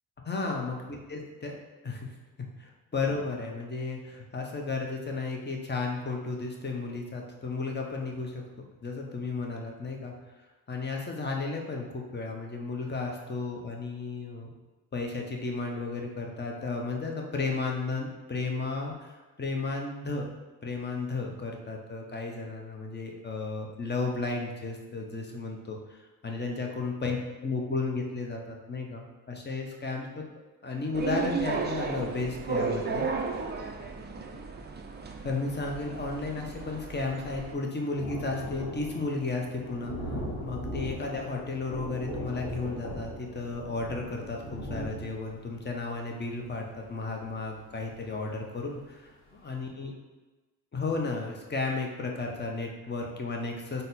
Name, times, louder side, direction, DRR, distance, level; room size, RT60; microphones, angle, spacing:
voice 1, 0.2-1.5 1.8-2.1 2.4-10.1 10.7-14.5 14.9-20.3 20.6-26.0 26.2-30.2 30.6-33.1 35.2-49.9 50.7-53.8, left 3 dB, 25° left, 0 dB, 0.8 m, -33 dB
sound 1, 30.9-37.5, right 4 dB, 25° right, 0.4 m, -34 dB
Thunder, 35.5-35.6 35.8-48.4 48.9-49.0 49.3-49.4, equal, 70° left, 1.5 m, -40 dB
4.1 x 2.2 x 4.0 m, 1.2 s
cardioid pair, 65°, 40 cm